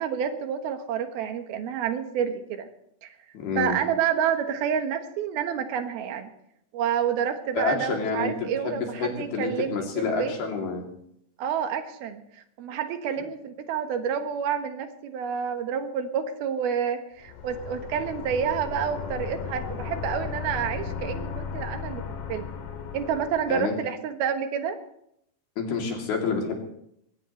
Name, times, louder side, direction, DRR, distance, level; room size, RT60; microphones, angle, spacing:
voice 1, 0.0-2.7 3.0-3.1 3.6-6.3 6.7-10.3 11.4-12.2 12.6-22.5 22.9-24.8, right 8 dB, 80° right, 7 dB, 3.2 m, -29 dB
voice 2, 3.3-3.8 7.5-10.8 23.5-23.7 25.6-26.5, left 5 dB, 90° left, 1 dB, 4.9 m, -28 dB
sound 1, 17.2-23.7, left 6 dB, 70° left, 3.2 m, -35 dB
22.0 x 17.5 x 3.2 m, 0.73 s
omnidirectional pair, 4.3 m